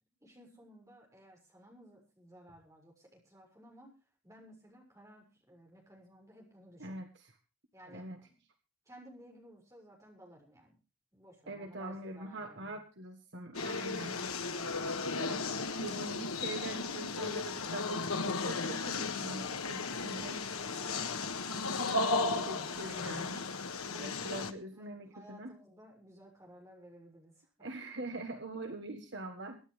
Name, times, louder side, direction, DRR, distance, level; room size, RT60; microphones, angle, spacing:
voice 1, 0.2-4.0 4.2-7.0 7.7-8.4 8.8-10.8 11.1-12.8 21.7-22.2 22.5-23.1 23.5-24.2 24.8-27.7, right 1 dB, 15° right, 0 dB, 6.4 m, -57 dB
voice 2, 6.8-7.4 7.8-8.2 11.5-14.2 15.1-15.4 15.8-20.4 21.5-23.4 24.0-25.5 27.6-29.6, right 2 dB, 55° right, 5 dB, 1.6 m, -43 dB
sound 1, 13.5-24.5, left 3 dB, 85° left, 1.5 m, -35 dB
24.5 x 10.5 x 3.4 m, 0.32 s
head